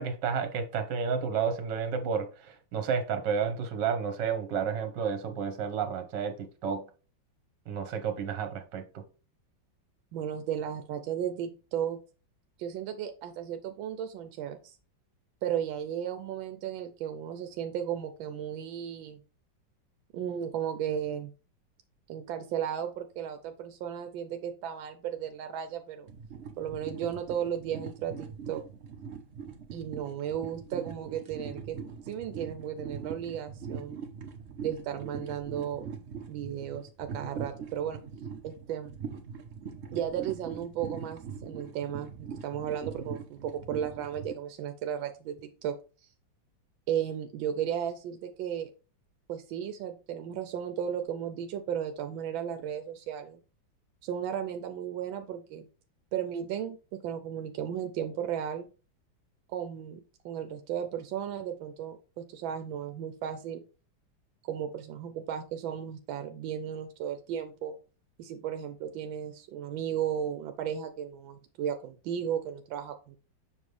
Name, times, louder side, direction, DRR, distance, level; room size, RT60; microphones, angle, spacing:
voice 1, 0.0-6.8 7.7-9.0 35.0-35.1, right 6 dB, 65° right, 1.7 m, -31 dB
voice 2, 10.1-12.0 12.6-14.8 15.4-19.2 20.1-21.3 22.1-26.1 26.6-28.6 29.7-31.8 32.0-34.0 34.6-35.8 36.3-38.0 38.4-38.9 39.9-45.7 46.9-48.7 49.3-53.4 54.0-55.7 56.1-56.8 57.0-58.7 59.5-60.0 60.2-63.6 64.4-67.8 68.2-73.2, right 9 dB, 85° right, 1.4 m, -35 dB
sound 1, 26.1-44.4, right 6 dB, 50° right, 0.8 m, -42 dB
7.2 x 5.4 x 3.2 m
omnidirectional pair, 2.1 m